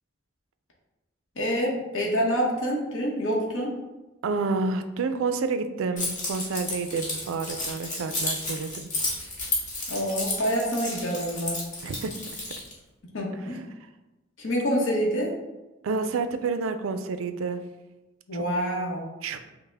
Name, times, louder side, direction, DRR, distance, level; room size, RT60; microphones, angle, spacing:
voice 1, 1.4-3.7 9.9-11.6 13.1-13.6 14.4-15.3 18.3-19.0, equal, 75° left, -3 dB, 0.8 m, -27 dB
voice 2, 4.2-8.9 11.8-12.1 15.8-17.6 18.3-18.4 19.2-19.4, right 4 dB, 85° right, 9 dB, 0.4 m, -29 dB
Keys jangling, 6.0-12.7, left 2 dB, 40° left, 1.1 m, -32 dB
5.4 x 2.1 x 3.4 m, 1.0 s
head